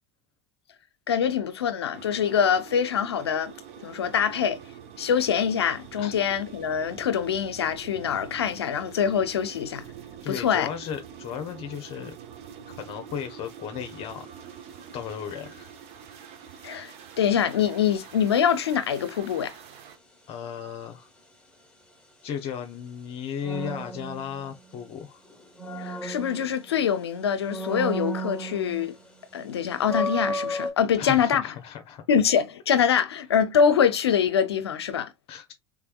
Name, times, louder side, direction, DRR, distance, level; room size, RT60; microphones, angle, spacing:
voice 1, 1.1-3.5 3.8-4.6 5.0-9.8 10.3-10.7 16.6-19.5 25.8-28.9 29.3-31.5 32.1-35.1, left 8 dB, 80° left, 0.6 m, -24 dB
sound 1, 1.9-20.0, right 8 dB, 55° right, 0.9 m, -45 dB
voice 2, 10.2-12.1 12.8-14.3 14.9-15.7 20.3-21.1 22.2-25.2 31.0-32.0 35.3-35.5, left 8 dB, 50° left, 0.8 m, -35 dB
sound 2, 13.8-14.1 23.4-24.9 25.3-26.9 27.4-29.0 29.3-29.4 29.8-30.7, right 1 dB, 5° left, 1.6 m, -33 dB
3.5 x 3.4 x 2.3 m
hypercardioid pair, 75°, 13 cm